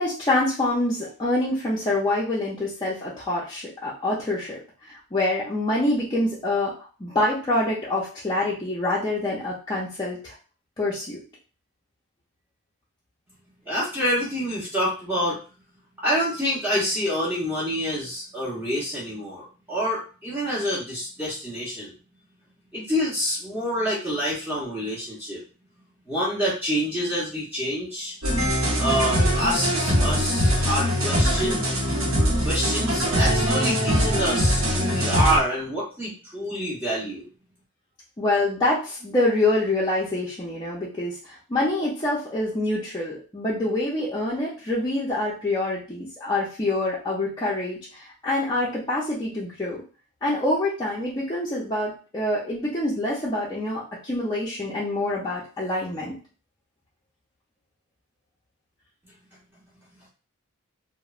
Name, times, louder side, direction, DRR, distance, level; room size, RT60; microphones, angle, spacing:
voice 1, 0.0-4.6 4.9-6.7 7.0-10.3 10.8-11.2 38.2-49.8 50.2-56.1, left 2 dB, 20° left, -7 dB, 0.4 m, -26 dB
voice 2, 13.7-15.4 16.0-21.9 22.7-25.4 26.1-28.2 28.8-31.6 32.4-37.3, equal, 10° right, -8 dB, 0.7 m, -27 dB
sound 1, 28.2-35.4, equal, 80° right, 0.8 m, -22 dB
2.9 x 2.0 x 2.3 m, 0.36 s
head